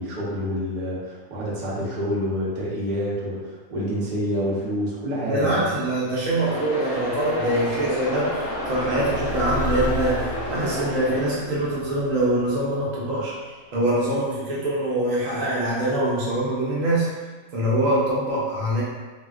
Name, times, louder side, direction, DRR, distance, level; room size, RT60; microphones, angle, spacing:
voice 1, 0.0-5.7, equal, 40° right, -7 dB, 0.7 m, -27 dB
voice 2, 5.2-17.1 17.5-18.8, right 1 dB, 70° right, -6 dB, 1.0 m, -24 dB
sound 1, 6.4-11.3, left 1 dB, 5° left, 0.8 m, -30 dB
sound 2, 6.5-13.4, left 1 dB, 90° left, 1.1 m, -34 dB
3.5 x 2.3 x 2.3 m, 1.3 s
omnidirectional pair, 1.5 m